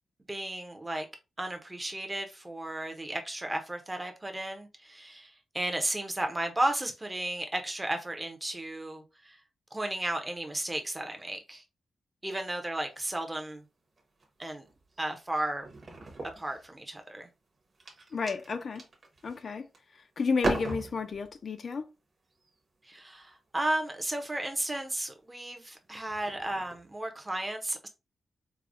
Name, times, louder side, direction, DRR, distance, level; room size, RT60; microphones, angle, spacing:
voice 1, 0.3-1.1 1.4-9.4 9.7-11.6 12.2-13.6 14.4-14.6 15.0-15.7 16.4-17.3 22.8-27.9, right 1 dB, 10° right, 0.5 m, -34 dB
sound 1, 12.8-13.5 14.0-14.3 14.7-17.1 17.5-19.9 20.3-21.4 22.3-22.5 23.7-23.9 24.7-25.0 25.5-25.6 25.9-27.0, right 2 dB, 35° right, 0.8 m, -39 dB
voice 2, 18.1-18.8 19.2-19.7 20.2-21.8, left 5 dB, 45° left, 0.3 m, -31 dB
4.6 x 2.0 x 2.4 m
wide cardioid pair, 165°, 0 cm